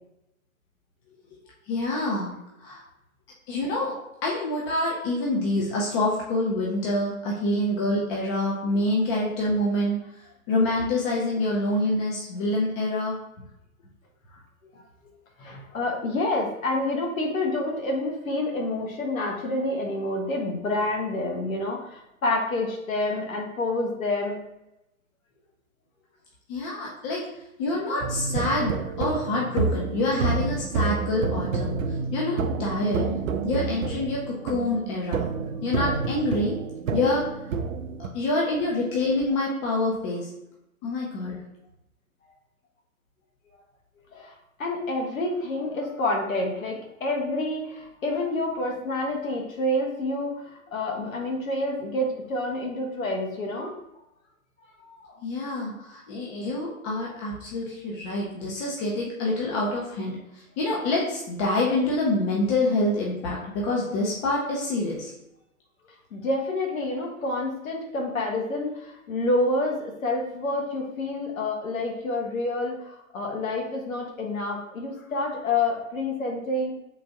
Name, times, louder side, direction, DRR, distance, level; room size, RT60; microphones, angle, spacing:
voice 1, 1.7-2.3 2.6-2.8 3.5-3.9 4.2-10.0 10.5-13.2 26.5-27.3 27.6-31.8 32.1-33.1 33.4-35.2 35.6-36.6 36.9-37.2 38.0-40.3 40.8-41.4 55.2-65.1, left 2 dB, 20° left, -4 dB, 0.6 m, -26 dB
voice 2, 15.4-24.4 44.1-44.3 44.6-53.7 54.8-55.2 66.1-76.7, left 2 dB, 65° left, 0 dB, 1.2 m, -28 dB
sound 1, 28.0-38.1, right 4 dB, 65° right, 0.6 m, -29 dB
3.8 x 2.5 x 4.4 m, 0.87 s
figure-of-eight pair, 120°, 43 cm